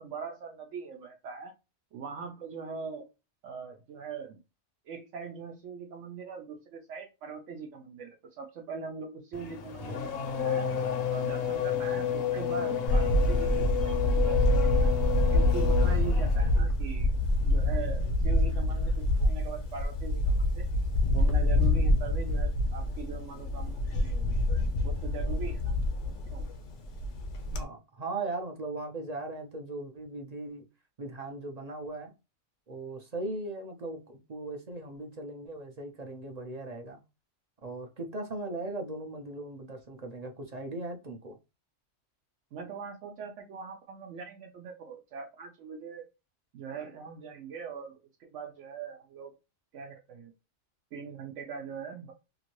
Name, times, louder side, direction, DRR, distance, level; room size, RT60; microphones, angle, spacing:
voice 1, 0.0-1.5 1.9-3.1 3.4-4.4 4.9-10.7 11.1-14.4 14.8-14.9 15.3-17.1 17.4-20.7 21.1-25.8 26.3-26.5 42.5-46.1 46.5-49.3 49.7-50.3 50.9-52.1, right 5 dB, 80° right, 1.0 m, -41 dB
Race car auto racing / Accelerating revving vroom, 9.3-16.6, left 9 dB, 60° left, 0.8 m, -31 dB
Camera, 12.9-27.6, left 1 dB, 75° left, 1.1 m, -26 dB
voice 2, 27.5-30.6 31.0-32.1 32.7-37.0 37.6-41.4, right 2 dB, 45° right, 0.6 m, -38 dB
2.9 x 2.5 x 2.9 m
omnidirectional pair, 1.3 m